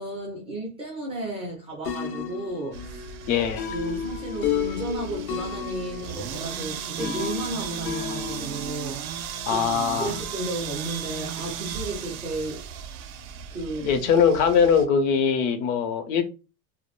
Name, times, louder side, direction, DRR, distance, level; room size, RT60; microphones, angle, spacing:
voice 1, 0.0-3.1 3.7-12.6 13.5-14.2, right 2 dB, 15° right, 0.3 m, -34 dB
sound 1, 1.9-8.7, left 8 dB, 85° left, 0.8 m, -33 dB
sound 2, 2.7-14.9, right 8 dB, 70° right, 0.5 m, -36 dB
voice 2, 3.3-3.7 9.5-10.1 13.8-16.2, left 6 dB, 60° left, 0.6 m, -21 dB
2.2 x 2.0 x 3.0 m
supercardioid pair, 140°, 43 cm